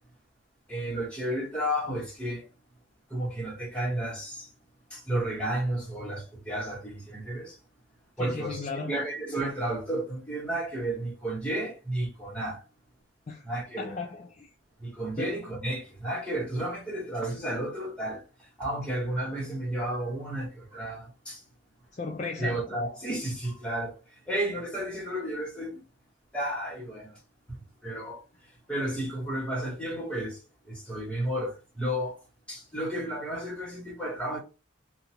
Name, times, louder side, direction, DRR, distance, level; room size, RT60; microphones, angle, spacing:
voice 1, 0.7-2.4 3.1-4.5 4.9-7.6 8.2-12.6 13.4-13.9 14.8-18.2 18.6-21.4 22.4-23.9 24.3-25.8 26.3-27.1 27.8-28.2 28.7-30.4 30.7-32.1 32.5-34.4, right 1 dB, 5° left, 1.1 m, -32 dB
voice 2, 8.2-8.9 13.3-13.5 13.8-14.5 15.2-15.3 21.9-22.6, left 4 dB, 35° left, 0.3 m, -36 dB
2.8 x 2.3 x 2.8 m
head